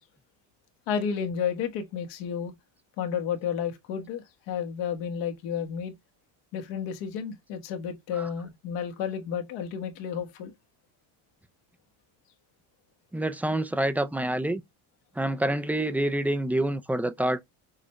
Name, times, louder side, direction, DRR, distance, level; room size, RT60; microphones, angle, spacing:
voice 1, 0.9-2.5 3.0-5.9 6.5-10.5, left 7 dB, 80° left, 1.3 m, -31 dB
voice 2, 13.1-14.6 15.2-17.4, right 1 dB, 5° right, 0.3 m, -27 dB
6.3 x 2.2 x 2.9 m
cardioid pair, 110°, 44 cm